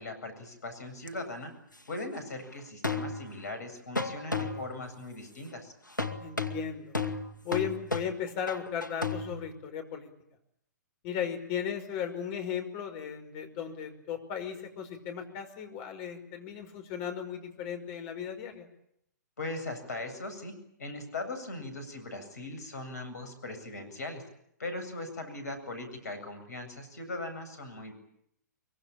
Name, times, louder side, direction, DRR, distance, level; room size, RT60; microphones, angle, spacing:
voice 1, 0.0-1.5 1.9-5.7 19.4-20.5 20.8-24.2 24.6-27.9, left 2 dB, 60° left, 8 dB, 7.9 m, -39 dB
sound 1, 1.1-1.2 2.8-3.6 4.0-4.9 6.0-9.3, left 3 dB, 85° left, 2.1 m, -34 dB
voice 2, 6.2-6.9 7.4-10.1 11.0-18.7, left 8 dB, 35° left, 6 dB, 5.5 m, -36 dB
24.5 x 24.0 x 8.9 m, 0.75 s
figure-of-eight pair, 115°, 10 cm